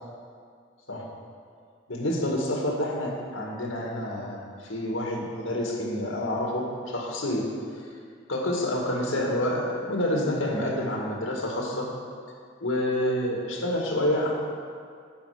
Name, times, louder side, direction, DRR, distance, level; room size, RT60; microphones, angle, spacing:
voice 1, 1.9-7.5 8.3-11.9 12.6-14.3, left 1 dB, 85° left, -1 dB, 1.8 m, -28 dB
10.0 x 7.6 x 5.0 m, 2.2 s
head